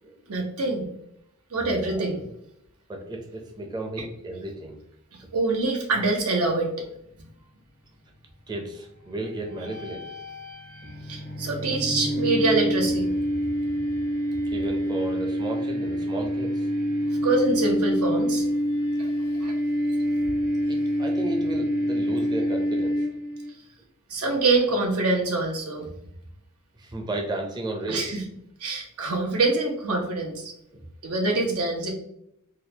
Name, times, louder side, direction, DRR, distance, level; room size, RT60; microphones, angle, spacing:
voice 1, 0.3-0.9 1.5-2.2 5.3-6.7 11.1-13.1 17.2-18.4 19.0-19.1 19.4-19.5 24.1-25.9 27.9-28.2 28.6-30.5 31.0-31.9, right 3 dB, 85° right, 1 dB, 0.9 m, -25 dB
voice 2, 1.5-2.1 2.9-4.8 8.5-10.1 14.5-16.7 20.7-23.0 26.8-28.1 30.7-30.8, right 1 dB, 20° right, 1 dB, 0.6 m, -33 dB
sound 1, 9.5-23.5, equal, 45° right, 1.1 m, -26 dB
4.0 x 2.4 x 2.7 m, 0.75 s
head